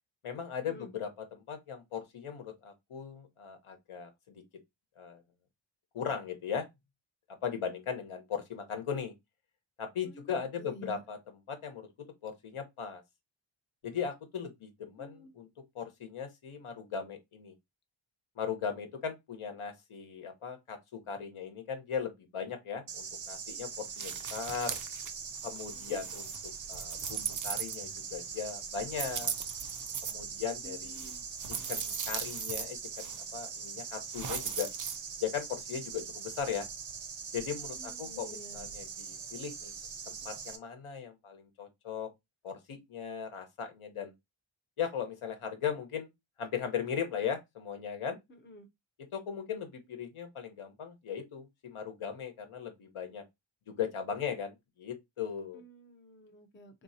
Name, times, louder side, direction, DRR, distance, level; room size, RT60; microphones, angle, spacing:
voice 1, 0.2-4.4 5.0-5.2 5.9-6.7 7.4-9.1 9.8-11.9 12.2-13.0 13.8-15.5 15.7-17.5 18.4-24.8 25.4-26.3 26.7-29.3 30.0-31.1 31.7-34.7 35.2-36.7 37.3-39.7 40.1-42.1 42.4-44.1 44.8-46.1 46.4-48.2 49.1-53.2 53.7-55.6, left 7 dB, 85° left, 1.1 m, -38 dB
voice 2, 10.0-11.0 15.0-15.3 25.7-26.0 30.6-31.3 37.8-38.7 48.3-48.7 55.5-56.8, equal, 25° left, 0.5 m, -51 dB
sound 1, 22.9-40.6, right 6 dB, 65° right, 0.8 m, -42 dB
sound 2, 24.0-25.1 25.4-28.1 28.9-30.1 30.9-32.6 33.0-33.2 34.1-35.0, right 7 dB, 40° right, 0.5 m, -38 dB
3.7 x 2.7 x 2.7 m
wide cardioid pair, 145°, 49 cm